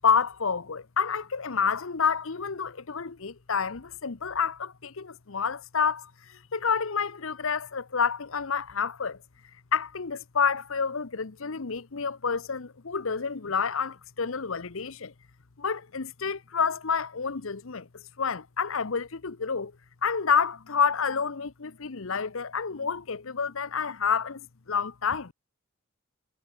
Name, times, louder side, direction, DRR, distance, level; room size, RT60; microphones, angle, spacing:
voice 1, 0.0-9.2 9.7-15.1 15.6-17.9 18.2-19.7 20.0-25.3, left 6 dB, 65° left, 0.9 m, -29 dB
head